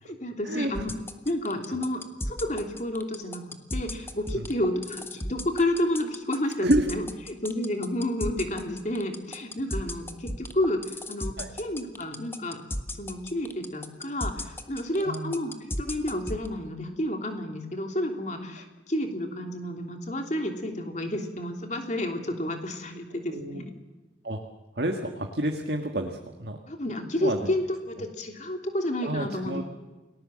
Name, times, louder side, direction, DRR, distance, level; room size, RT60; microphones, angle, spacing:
voice 1, 0.0-1.0 1.2-3.4 3.7-12.6 13.0-23.7 26.7-29.6, left 1 dB, 40° left, 4 dB, 3.1 m, -30 dB
sound 1, 0.8-16.5, left 1 dB, 15° left, 1.4 m, -33 dB
voice 2, 15.0-15.3 23.3-23.6 24.2-24.4 24.8-26.6 27.2-27.5 29.0-29.6, right 1 dB, 65° right, 3 dB, 1.7 m, -29 dB
29.0 x 19.0 x 7.6 m, 1.2 s
head